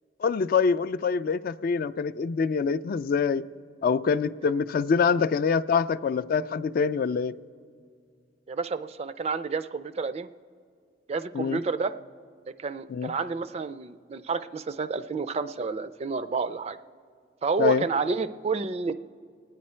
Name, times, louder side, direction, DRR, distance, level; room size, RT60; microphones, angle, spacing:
voice 1, 0.2-3.4 3.8-7.3 11.3-11.6 12.9-13.1 17.6-17.8, left 5 dB, 50° left, 0.3 m, -25 dB
voice 2, 8.5-10.3 11.1-11.9 12.6-16.8 17.4-18.9, right 4 dB, 35° right, 0.3 m, -29 dB
27.0 x 9.4 x 4.3 m
head